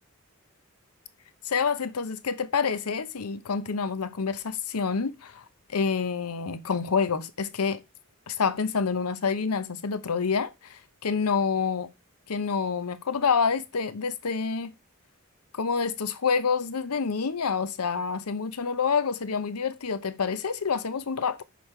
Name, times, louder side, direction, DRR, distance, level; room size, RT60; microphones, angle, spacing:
voice 1, 1.5-5.4 5.7-7.8 8.3-11.9 12.3-14.7 15.5-21.4, left 5 dB, 90° left, 0.7 m, -27 dB
6.3 x 5.2 x 4.4 m
head